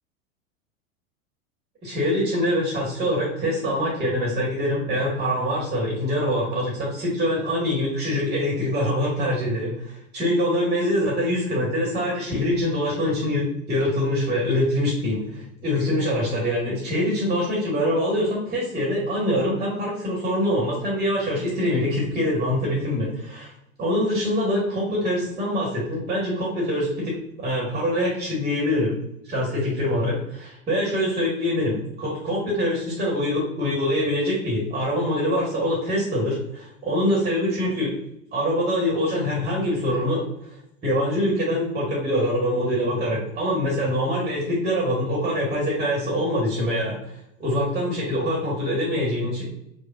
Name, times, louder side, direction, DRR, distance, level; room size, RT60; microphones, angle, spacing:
voice 1, 1.8-23.5 23.8-27.1 27.4-28.9 29.3-37.9 38.3-40.2 40.8-47.0 47.4-49.4, equal, 15° right, -4 dB, 1.1 m, -24 dB
5.1 x 2.1 x 2.3 m, 0.80 s
figure-of-eight pair, 90°, 42 cm